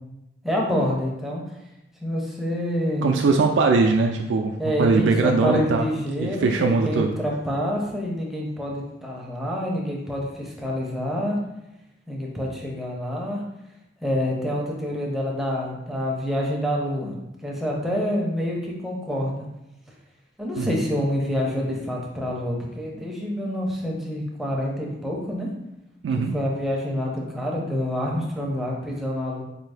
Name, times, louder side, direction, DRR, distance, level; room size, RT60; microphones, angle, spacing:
voice 1, 0.4-1.4 2.0-3.1 4.6-11.4 12.1-13.4 14.0-17.1 17.4-19.4 20.4-25.5 26.1-29.4, equal, ahead, -2 dB, 0.6 m, -27 dB
voice 2, 3.0-4.5 4.8-5.9 6.2-7.1 20.6-20.8 26.0-26.3, right 4 dB, 75° right, 2 dB, 0.3 m, -21 dB
4.1 x 2.6 x 3.3 m, 0.90 s
head